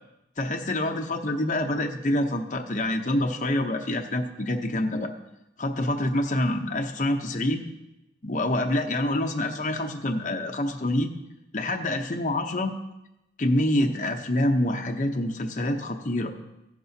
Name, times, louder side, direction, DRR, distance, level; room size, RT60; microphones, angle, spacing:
voice 1, 0.4-5.1 5.6-7.7 8.2-11.1 11.5-12.8 13.4-16.3, left 1 dB, 40° left, 3 dB, 0.8 m, -26 dB
14.5 x 11.0 x 2.8 m, 0.91 s
head